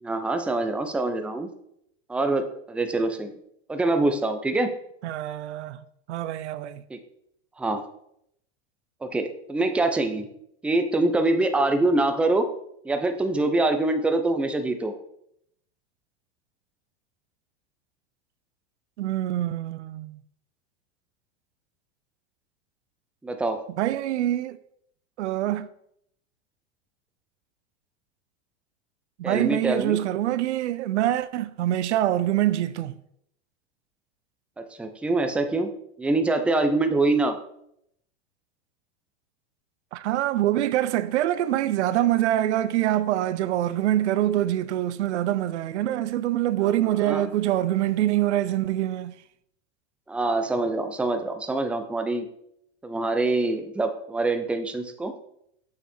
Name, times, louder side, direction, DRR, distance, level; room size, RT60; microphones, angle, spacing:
voice 1, 0.0-1.5 2.1-3.3 3.7-4.7 6.9-7.0 7.6-7.8 9.0-10.3 10.6-12.5 12.8-14.9 23.2-23.6 29.2-30.0 34.6-35.7 36.0-37.4 46.6-46.7 47.0-47.2 50.1-52.3 52.8-55.1, right 2 dB, 5° right, 0.5 m, -24 dB
voice 2, 5.0-6.8 19.0-20.2 23.8-24.6 25.2-25.7 29.2-32.9 39.9-49.1, right 13 dB, 85° right, 0.5 m, -25 dB
6.8 x 5.5 x 4.3 m
supercardioid pair, 125°, 33 cm